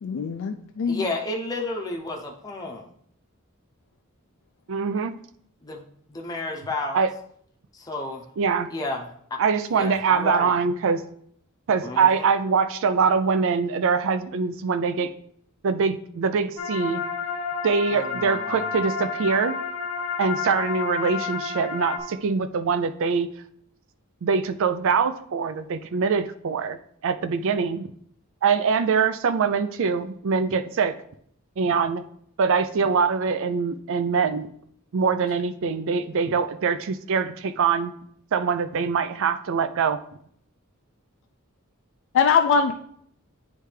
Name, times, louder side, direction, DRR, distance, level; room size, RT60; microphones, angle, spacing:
voice 1, 0.0-1.1 42.1-42.7, left 6 dB, 60° left, 6 dB, 0.4 m, -22 dB
voice 2, 0.9-2.9 5.6-5.8 6.1-7.0 7.7-8.2 8.7-9.0 9.3-9.4 9.7-10.5 11.8-12.3 17.9-18.7, left 2 dB, 20° left, 0 dB, 0.7 m, -32 dB
voice 3, 4.7-5.1 6.9-7.1 8.4-8.7 9.4-11.0 11.7-15.1 15.6-17.0 17.6-19.6 20.2-23.3 24.2-27.9 28.4-30.9 31.6-32.0 32.4-34.5 34.9-37.9 38.3-40.0, right 5 dB, 65° right, 11 dB, 0.4 m, -23 dB
sound 1, 16.6-22.0, left 5 dB, 85° left, 1.0 m, -30 dB
9.6 x 3.3 x 3.3 m, 0.66 s
head